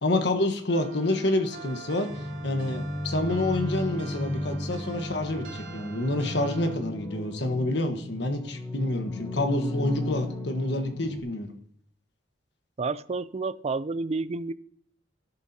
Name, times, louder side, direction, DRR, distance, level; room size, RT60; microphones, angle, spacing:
voice 1, 0.0-2.1 2.4-11.5, left 1 dB, 65° left, 6 dB, 1.3 m, -28 dB
sound 1, 0.7-6.8, right 5 dB, 85° right, 2.5 m, -45 dB
sound 2, 2.1-11.2, left 1 dB, 20° left, 0.9 m, -34 dB
voice 2, 12.8-14.5, right 3 dB, 35° right, 16 dB, 0.4 m, -30 dB
13.0 x 11.0 x 2.8 m, 0.66 s
head